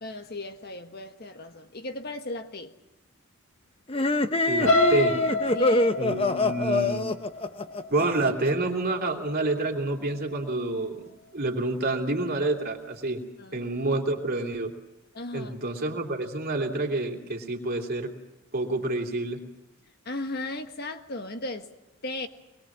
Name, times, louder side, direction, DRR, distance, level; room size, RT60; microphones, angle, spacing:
voice 1, 0.0-2.7 5.5-6.0 13.4-13.6 15.1-15.5 20.0-21.7 22.0-22.3, left 2 dB, 50° left, 1.5 m, -36 dB
sound 1, 3.9-8.5, left 2 dB, 25° left, 0.9 m, -25 dB
voice 2, 4.5-5.2 6.0-7.0 7.9-13.2 13.5-14.7 15.3-18.1 18.5-19.4, right 2 dB, 45° right, 3.0 m, -28 dB
sound 2, 4.6-8.6 9.1-9.4 9.7-9.8, left 2 dB, 70° left, 2.0 m, -27 dB
24.0 x 21.5 x 7.4 m
head